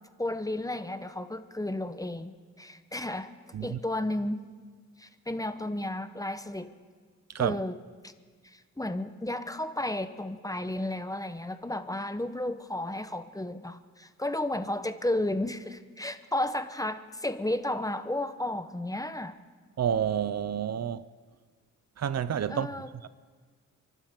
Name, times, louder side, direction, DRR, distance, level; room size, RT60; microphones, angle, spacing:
voice 1, 0.2-3.3 3.6-4.4 5.0-6.7 7.4-7.7 8.0-8.1 8.4-19.4 22.5-22.9, left 1 dB, 10° left, 0.9 m, -33 dB
voice 2, 19.8-21.1 22.0-22.7 23.0-23.1, right 9 dB, 55° right, 0.5 m, -29 dB
30.0 x 12.0 x 3.7 m
cardioid pair, 70°, 31 cm